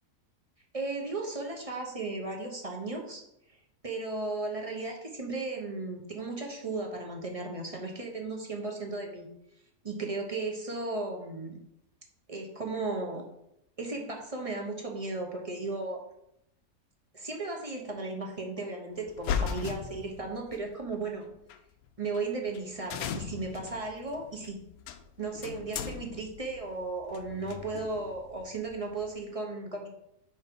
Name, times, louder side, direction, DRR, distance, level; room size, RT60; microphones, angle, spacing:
voice 1, 0.7-3.2 3.8-9.3 9.8-11.6 12.3-13.2 13.8-16.0 17.1-21.3 22.0-24.6 25.2-29.9, right 3 dB, 30° right, 1 dB, 0.7 m, -35 dB
sound 1, 19.1-20.6 21.5-21.6 22.1-22.2 22.5-22.6 22.9-29.2, left 7 dB, 70° left, 1.0 m, -38 dB
5.4 x 4.4 x 5.3 m, 0.79 s
omnidirectional pair, 1.7 m